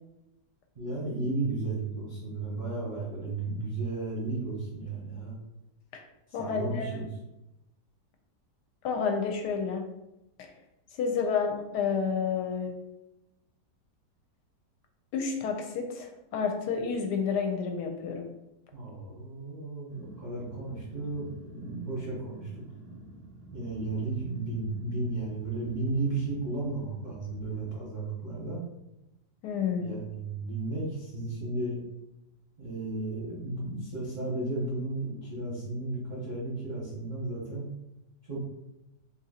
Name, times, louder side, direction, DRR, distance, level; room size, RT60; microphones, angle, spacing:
voice 1, 0.7-5.3 6.3-7.1 18.7-21.2 21.5-22.6 23.5-28.6 29.8-31.8 32.6-37.7 38.3-38.4, right 2 dB, 40° right, -6 dB, 0.7 m, -34 dB
voice 2, 6.3-7.0 8.8-9.8 10.4-10.5 11.0-12.7 15.1-18.3 29.4-29.9, left 6 dB, 75° left, 4 dB, 1.1 m, -30 dB
Growling, 19.9-27.6, right 1 dB, 90° right, 0.4 m, -49 dB
2.7 x 2.7 x 4.0 m, 0.91 s
omnidirectional pair, 1.9 m